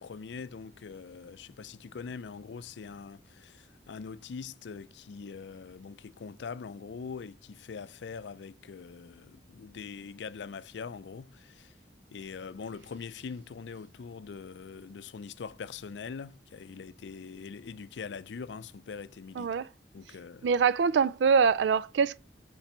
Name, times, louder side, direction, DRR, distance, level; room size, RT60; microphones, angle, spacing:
voice 1, 0.0-11.7 12.1-19.5 19.9-20.5, left 5 dB, 80° left, 0.4 m, -43 dB
voice 2, 19.4-19.7 20.4-22.2, right 6 dB, 80° right, 0.3 m, -24 dB
5.8 x 4.6 x 4.3 m
head